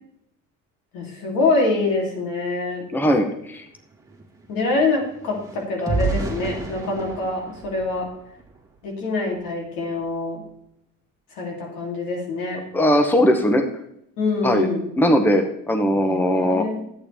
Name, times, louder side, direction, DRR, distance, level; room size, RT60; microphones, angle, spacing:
voice 1, 0.9-2.8 4.5-8.1 8.8-10.4 11.3-12.6 14.2-14.8 15.9-16.8, left 3 dB, 85° left, -1 dB, 3.1 m, -25 dB
voice 2, 2.9-3.7 12.7-13.7 14.4-14.7 15.0-16.7, equal, 5° left, 6 dB, 0.8 m, -19 dB
sound 1, 2.9-3.0 3.3-8.8 9.3-9.5 9.8-10.1, right 3 dB, 10° right, 1.8 m, -32 dB
11.0 x 8.6 x 3.5 m, 0.75 s
cardioid pair, 145°, 33 cm